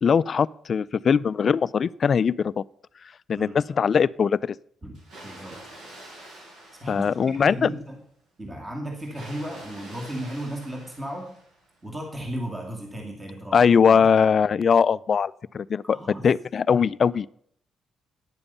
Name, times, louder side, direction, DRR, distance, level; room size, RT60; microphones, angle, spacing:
voice 1, 0.0-2.6 3.3-4.6 6.9-7.7 13.5-17.3, left 6 dB, 45° left, 19 dB, 0.3 m, -21 dB
Water, 4.9-7.8 9.0-11.8, right 1 dB, 70° right, 5.7 m, -46 dB
voice 2, 5.2-5.6 6.8-8.0 8.4-11.3 11.8-14.0 15.8-16.3, right 1 dB, 20° right, 1 dB, 2.2 m, -35 dB
9.9 x 7.1 x 6.8 m, 0.63 s
cardioid pair, 90°, 0 cm